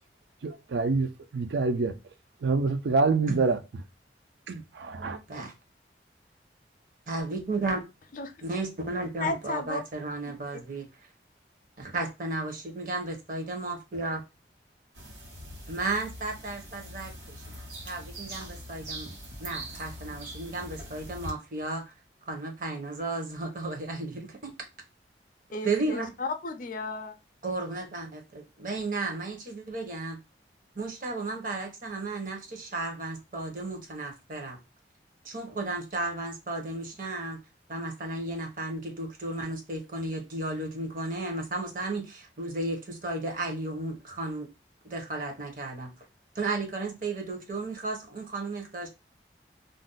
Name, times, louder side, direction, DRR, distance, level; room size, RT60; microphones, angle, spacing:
voice 1, 0.4-1.9 2.4-3.6 4.5-5.2, right 3 dB, 70° right, 0.4 m, -26 dB
voice 2, 7.1-7.8 8.4-10.9 11.8-14.2 15.7-17.6 17.8-19.1 19.4-21.9 22.3-24.5 25.6-26.1 27.4-30.2 30.8-34.6 35.2-37.4 37.7-44.5 44.8-45.9 46.4-48.9, right 2 dB, 50° right, 0.8 m, -34 dB
voice 3, 9.2-9.8 25.5-27.2, left 3 dB, 50° left, 0.4 m, -33 dB
sound 1, 14.9-21.3, right 1 dB, 90° right, 1.2 m, -42 dB
2.5 x 2.1 x 3.8 m
head